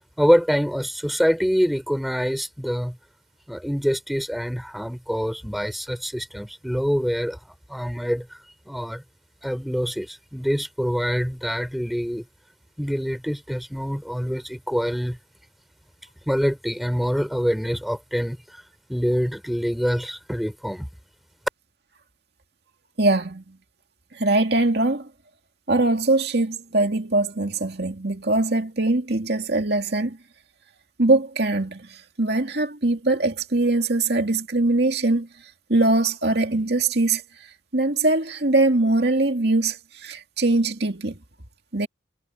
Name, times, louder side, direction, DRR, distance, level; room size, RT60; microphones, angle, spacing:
voice 1, 0.2-3.0 3.5-7.4 7.7-8.3 8.7-9.0 9.4-12.2 12.8-15.2 16.3-18.4 18.9-20.9, equal, ahead, 3.5 m, -25 dB
voice 2, 23.0-23.6 24.1-25.1 25.7-30.2 31.0-35.3 35.7-37.2 37.7-41.2 41.7-41.9, right 2 dB, 55° right, 2.5 m, -22 dB
head